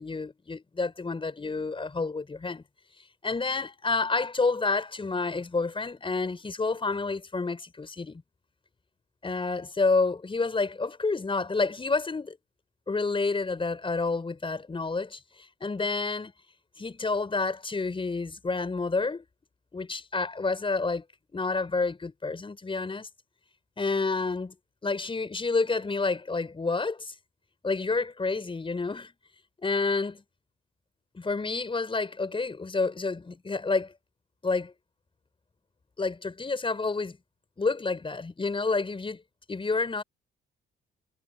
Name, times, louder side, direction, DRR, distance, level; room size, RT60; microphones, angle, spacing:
voice 1, 0.0-2.6 3.2-8.2 9.2-12.4 12.9-15.2 15.6-16.3 16.8-19.2 19.7-21.0 21.3-23.1 23.8-24.5 24.8-27.1 27.6-29.1 29.6-30.2 31.1-33.9 34.4-34.7 36.0-37.2 37.6-39.2 39.5-40.0, left 3 dB, 25° left, 5.8 m, -29 dB
cardioid pair, 95°, 20 cm